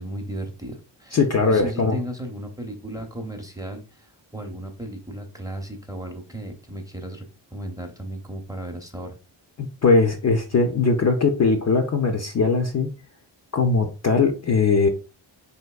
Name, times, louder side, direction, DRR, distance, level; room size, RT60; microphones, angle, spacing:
voice 1, 0.0-9.2, right 1 dB, 10° right, 4 dB, 0.7 m, -35 dB
voice 2, 1.1-2.0 9.6-12.9 13.5-14.9, left 4 dB, 35° left, 4 dB, 0.4 m, -20 dB
3.4 x 2.6 x 2.3 m, 0.34 s
cardioid pair, 60°, 47 cm